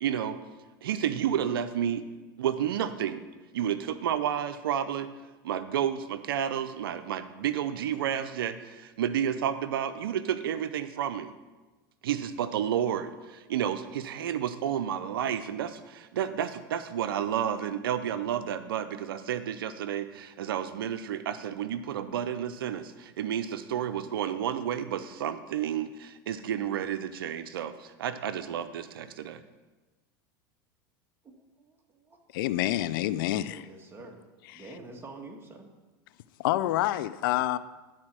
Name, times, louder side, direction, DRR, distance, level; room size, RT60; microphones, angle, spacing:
voice 1, 0.0-0.4 0.8-2.0 2.4-3.2 3.5-5.1 5.4-11.3 12.0-29.4, right 9 dB, 90° right, 11 dB, 0.5 m, -31 dB
voice 2, 31.2-32.2 33.2-34.2 34.5-35.7, right 3 dB, 20° right, 2 dB, 1.6 m, -47 dB
voice 3, 32.3-33.6 36.4-37.6, left 14 dB, 75° left, 16 dB, 0.4 m, -27 dB
11.0 x 4.4 x 6.1 m, 1.2 s
hypercardioid pair, 105°, 12 cm